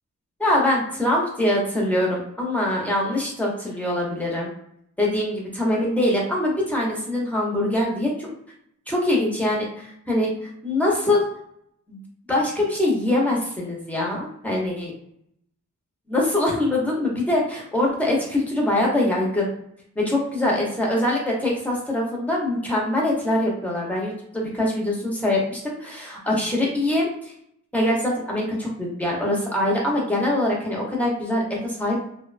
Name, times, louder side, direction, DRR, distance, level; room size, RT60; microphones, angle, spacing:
voice 1, 0.4-4.5 5.0-8.3 8.9-11.2 11.9-12.0 12.3-14.9 16.1-19.5 20.0-27.3 27.7-32.0, left 1 dB, 5° left, -3 dB, 0.8 m, -23 dB
2.7 x 2.1 x 2.5 m, 0.71 s
wide cardioid pair, 115°, 30 cm